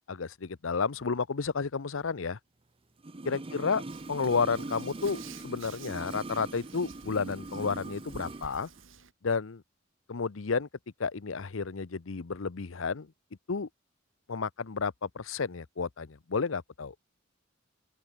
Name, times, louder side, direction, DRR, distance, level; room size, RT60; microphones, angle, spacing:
voice 1, 0.1-2.4 3.2-3.8 4.1-8.7 9.2-9.6 10.1-10.7 11.0-13.1 13.5-13.7 14.3-16.9, left 5 dB, 80° left, 0.7 m, -31 dB
sound 1, 3.0-8.5 8.8-8.9, right 2 dB, 30° right, 0.8 m, -41 dB
Hands, 3.9-9.1, right 5 dB, 75° right, 5.9 m, -52 dB
open air
head